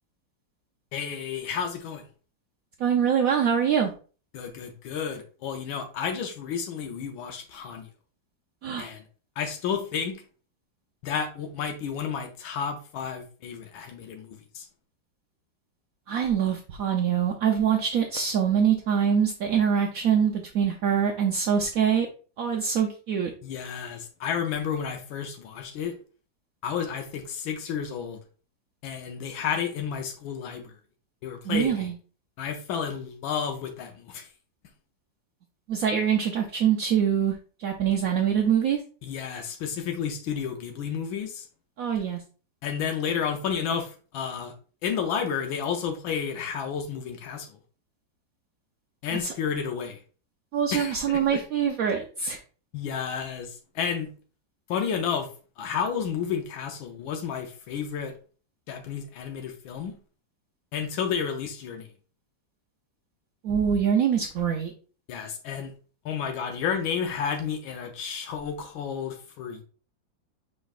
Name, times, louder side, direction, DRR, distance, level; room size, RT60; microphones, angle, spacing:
voice 1, 0.9-2.0 4.3-7.9 8.8-9.0 9.4-10.2 11.0-14.6 23.4-25.9 26.6-28.2 28.8-30.7 31.2-31.9 32.4-34.3 39.0-41.4 42.6-44.5 44.8-47.5 49.0-50.0 50.7-51.4 52.7-54.1 54.7-55.3 55.6-58.1 58.7-60.0 60.7-61.9 65.1-65.7 66.0-69.6, left 7 dB, 85° left, 4 dB, 1.5 m, -31 dB
voice 2, 2.8-3.9 8.6-8.9 16.1-22.1 22.4-23.3 31.4-31.9 35.7-38.8 41.8-42.2 49.1-49.3 50.5-52.4 63.4-64.7, right 8 dB, 85° right, 1 dB, 0.7 m, -24 dB
5.2 x 3.8 x 2.4 m, 0.38 s
omnidirectional pair, 2.1 m